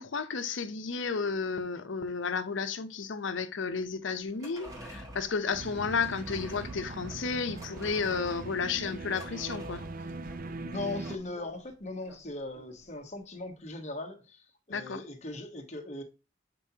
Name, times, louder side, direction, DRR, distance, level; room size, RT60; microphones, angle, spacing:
voice 1, 0.0-9.8 14.7-15.0, left 5 dB, 80° left, 0.7 m, -32 dB
sound 1, 4.2-12.9 13.2-13.3, right 1 dB, 20° right, 1.6 m, -49 dB
sound 2, 5.5-11.2, right 3 dB, 50° right, 0.4 m, -41 dB
voice 2, 10.6-16.0, left 2 dB, 35° left, 1.2 m, -39 dB
6.8 x 5.4 x 2.8 m
head